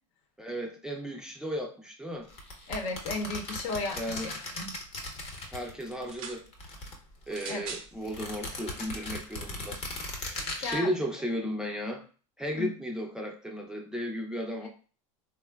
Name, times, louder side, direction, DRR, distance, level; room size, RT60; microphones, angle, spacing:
voice 1, 0.4-2.3 4.0-4.3 5.5-6.4 7.3-9.8 10.2-12.0 12.4-14.7, equal, 5° right, 0 dB, 0.5 m, -35 dB
sound 1, 2.3-6.1 6.4-7.5 8.0-10.8, left 2 dB, 35° left, 0.9 m, -38 dB
voice 2, 2.7-4.7 7.5-7.6 10.3-11.0 12.5-12.7 14.6-14.7, left 3 dB, 70° left, 2 dB, 0.9 m, -35 dB
sound 2, 6.0-6.4 7.3-7.9 8.8-8.9, right 5 dB, 75° right, 0.7 m, -41 dB
3.5 x 2.2 x 2.3 m, 0.39 s
supercardioid pair, 110°, 18 cm